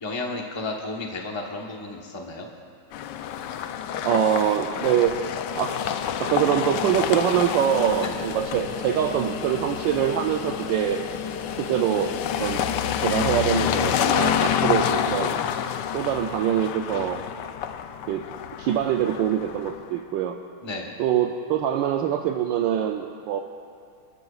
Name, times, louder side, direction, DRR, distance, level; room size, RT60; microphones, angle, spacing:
voice 1, 0.0-2.5 8.0-8.2 20.6-20.9, left 2 dB, 20° left, 0 dB, 0.8 m, -33 dB
sound 1, 2.9-19.9, left 9 dB, 75° left, 1.0 m, -28 dB
voice 2, 4.0-5.8 6.2-11.0 11.5-12.6 13.0-15.4 15.9-17.2 18.1-18.3 18.6-20.4 21.0-23.4, right 9 dB, 75° right, 4 dB, 1.2 m, -24 dB
29.0 x 12.0 x 2.4 m, 2.3 s
omnidirectional pair, 2.3 m